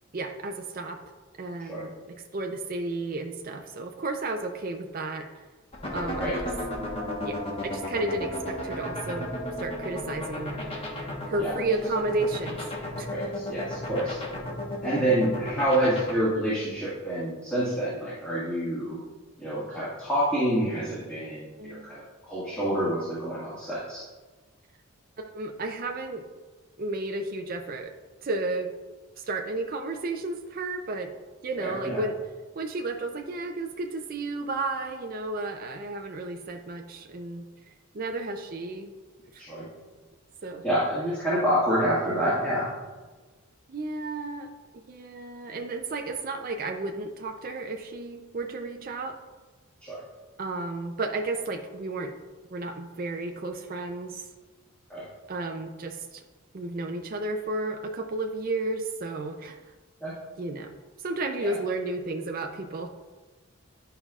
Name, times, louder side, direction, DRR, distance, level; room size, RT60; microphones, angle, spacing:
voice 1, 0.1-1.0 1.4-5.3 5.9-6.4 7.2-10.6 11.3-12.6 13.0-13.1 21.6-21.9 25.2-26.2 26.8-27.9 28.2-28.7 29.2-31.1 31.4-32.2 32.6-37.4 37.9-38.9 39.3-39.5 40.4-40.6 43.7-44.5 44.7-49.2 50.4-52.1 52.5-54.3 55.3-56.2 56.5-59.6 60.4-62.9, right 2 dB, 40° right, 4 dB, 0.5 m, -32 dB
sound 1, 5.7-16.1, left 1 dB, 25° left, 1.2 m, -33 dB
voice 2, 13.1-14.2 14.8-19.0 19.4-24.0 31.6-32.0 39.4-39.7 40.6-42.7 49.8-50.0 54.9-55.1 60.0-60.1 61.4-61.5, right 1 dB, 5° left, -11 dB, 1.7 m, -27 dB
11.0 x 5.5 x 2.4 m, 1.3 s
head